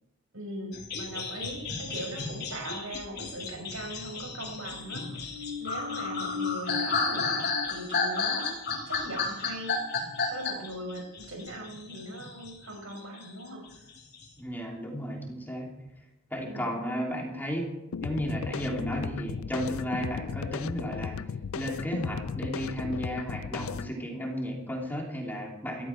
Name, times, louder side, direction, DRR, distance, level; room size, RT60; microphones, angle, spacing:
voice 1, 0.3-5.1 5.6-9.8 10.3-13.7 16.4-16.7, right 1 dB, 80° right, 3 dB, 5.3 m, -40 dB
sound 1, 0.7-12.5 12.9-14.2, left 4 dB, 50° left, 3.6 m, -33 dB
sound 2, 4.8-11.0 11.4-11.5, left 5 dB, 55° right, 1.6 m, -40 dB
voice 2, 14.4-15.7 16.3-17.7 18.0-21.2 21.5-25.9, equal, 10° left, -1 dB, 3.1 m, -33 dB
sound 3, 17.9-23.9, left 6 dB, 75° left, 0.4 m, -36 dB
19.0 x 14.0 x 4.5 m, 0.89 s
head